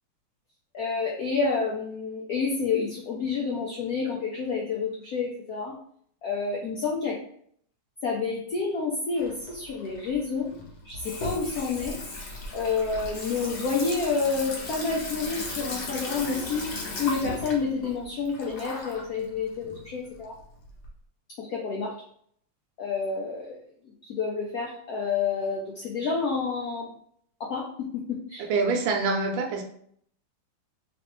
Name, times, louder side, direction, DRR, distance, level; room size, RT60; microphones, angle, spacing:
voice 1, 0.7-5.7 6.2-7.2 8.0-10.5 10.8-11.9 12.5-16.7 17.0-20.3 21.4-21.9 22.8-23.6 24.0-26.9 27.4-27.6 27.9-28.0 28.3-28.5, left 4 dB, 75° left, -3 dB, 0.8 m, -29 dB
Water tap faucet / Sink (filling or washing), 9.2-20.9, left 2 dB, 60° left, 1.1 m, -37 dB
voice 2, 28.5-29.6, right 4 dB, 75° right, 4 dB, 1.3 m, -25 dB
3.1 x 3.1 x 3.0 m, 0.64 s
omnidirectional pair, 2.3 m